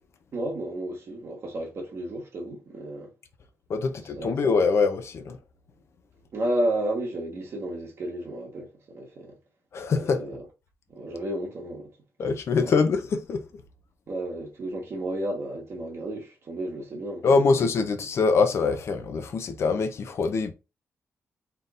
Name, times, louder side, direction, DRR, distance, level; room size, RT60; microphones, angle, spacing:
voice 1, 0.3-3.1 3.9-4.3 6.3-9.4 9.9-10.5 10.9-11.9 12.6-12.7 14.1-17.6, right 1 dB, 50° right, 1.7 m, -32 dB
voice 2, 3.7-5.4 9.7-10.2 12.2-13.4 17.2-20.5, left 4 dB, 55° left, 0.7 m, -24 dB
4.1 x 3.9 x 2.5 m
wide cardioid pair, 155°, 5 cm